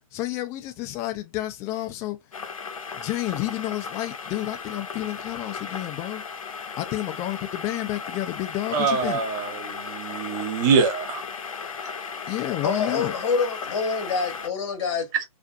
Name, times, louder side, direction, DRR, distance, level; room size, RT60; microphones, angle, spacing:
voice 1, 0.1-2.2 3.0-6.2 6.8-9.2 12.3-13.1, left 15 dB, 15° left, 0.3 m, -30 dB
sound 1, 2.3-14.5, left 5 dB, 70° left, 0.6 m, -36 dB
voice 2, 8.7-11.2 15.1-15.2, right 5 dB, 35° right, 0.7 m, -24 dB
voice 3, 12.6-15.1, left 5 dB, 45° left, 0.9 m, -26 dB
2.5 x 2.5 x 2.2 m
figure-of-eight pair, 130°, 18 cm